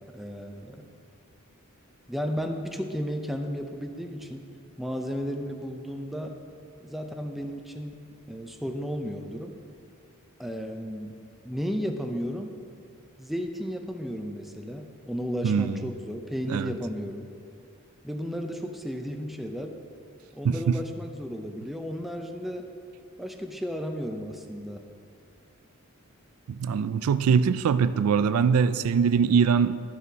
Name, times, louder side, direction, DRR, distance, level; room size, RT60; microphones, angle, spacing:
voice 1, 0.1-0.9 2.1-4.5 4.8-6.4 6.8-7.9 8.3-9.5 10.4-11.1 11.4-12.5 13.2-17.3 18.0-19.8 20.3-22.7 23.2-24.8, equal, ahead, 4 dB, 0.5 m, -34 dB
voice 2, 15.4-15.8 16.5-16.7 20.4-20.7 26.5-29.8, right 6 dB, 85° right, 14 dB, 0.3 m, -22 dB
12.0 x 9.5 x 2.8 m, 2.3 s
head